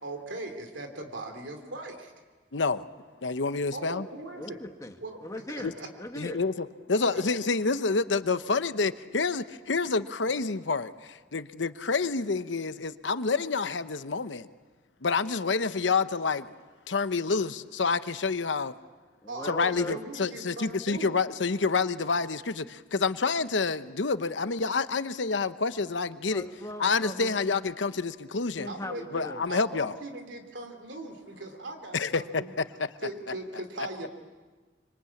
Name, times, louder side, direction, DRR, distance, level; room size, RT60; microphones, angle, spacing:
voice 1, 0.0-2.1 3.7-4.6 5.0-5.2 5.5-5.9 6.9-7.2 19.3-21.1 28.7-29.2 29.5-32.5 33.0-34.1, right 2 dB, 90° right, 5 dB, 3.1 m, -39 dB
voice 2, 2.5-2.8 3.2-4.0 5.6-5.7 6.2-14.5 15.0-16.5 16.9-18.7 19.4-26.5 26.8-28.7 29.1-29.9 31.9-32.4 33.8-33.9, left 4 dB, 85° left, 12 dB, 0.9 m, -28 dB
voice 3, 4.4-6.4 19.2-20.1 26.3-27.4 28.6-29.4, left 1 dB, 20° left, 5 dB, 1.7 m, -40 dB
26.0 x 25.5 x 8.6 m, 1.4 s
head